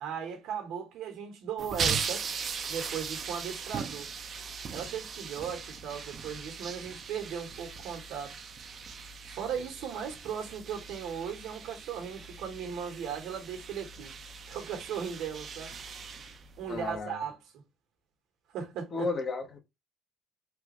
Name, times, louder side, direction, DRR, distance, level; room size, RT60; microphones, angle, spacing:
voice 1, 0.0-2.2 2.7-4.1 4.7-8.4 9.3-14.1 14.5-15.7 16.6-17.6 18.5-19.1, right 7 dB, 80° right, 1.1 m, -37 dB
sound 1, 1.6-17.0, right 6 dB, 45° right, 0.5 m, -39 dB
voice 2, 16.7-17.2 18.9-19.6, left 3 dB, 40° left, 0.9 m, -33 dB
3.4 x 2.4 x 3.0 m
cardioid pair, 115°, 0 cm